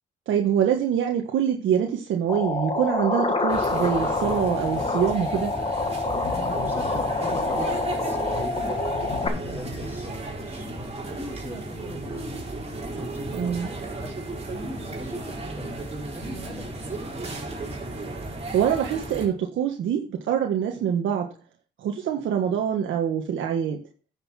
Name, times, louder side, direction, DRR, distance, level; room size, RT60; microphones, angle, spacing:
voice 1, 0.3-5.5 13.3-13.7 18.5-21.3 21.8-23.8, right 8 dB, 75° right, 2 dB, 1.5 m, -25 dB
sound 1, 2.3-9.3, left 3 dB, 30° left, 1.7 m, -27 dB
sound 2, 3.5-19.3, right 2 dB, 30° right, 4.0 m, -34 dB
sound 3, 6.1-7.8 8.9-10.6, left 5 dB, 55° left, 2.2 m, -39 dB
voice 2, 6.5-12.4 12.7-14.2 14.5-15.8 16.1-17.2, right 1 dB, 10° right, -7 dB, 5.4 m, -41 dB
9.5 x 6.8 x 4.3 m, 0.38 s
cardioid pair, 90°, 20 cm